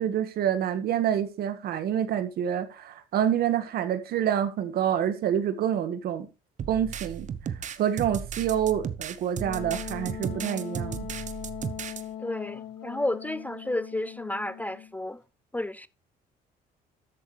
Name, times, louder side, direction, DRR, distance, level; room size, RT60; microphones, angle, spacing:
voice 1, 0.0-6.3 6.7-7.3 7.8-11.1, right 9 dB, 65° right, 1.7 m, -27 dB
sound 1, 6.6-12.0, right 8 dB, 45° right, 1.0 m, -35 dB
Wind instrument woodwind instrument, 9.4-14.9, left 10 dB, 85° left, 1.7 m, -40 dB
voice 2, 12.2-15.2 15.5-15.9, left 1 dB, 10° left, 0.4 m, -32 dB
13.5 x 8.3 x 3.3 m
cardioid pair, 110°, 17 cm